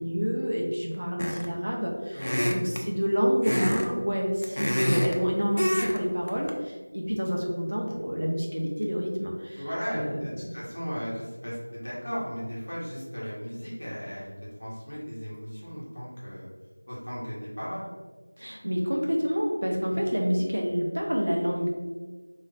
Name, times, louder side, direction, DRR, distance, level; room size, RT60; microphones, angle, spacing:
voice 1, 0.0-9.6 9.9-10.4 18.4-21.7, equal, 60° right, -1 dB, 0.9 m, -28 dB
sound 1, 1.2-1.6 2.2-2.8 3.4-3.9 4.2-5.2 5.6-6.0 6.3-6.5, equal, 75° left, 0.6 m, -27 dB
voice 2, 2.1-2.4 9.6-14.3 14.6-16.5 16.9-17.9 19.9-20.0, equal, 45° left, -8 dB, 1.4 m, -36 dB
3.1 x 2.6 x 3.9 m, 1.3 s
figure-of-eight pair, 175°, 0 cm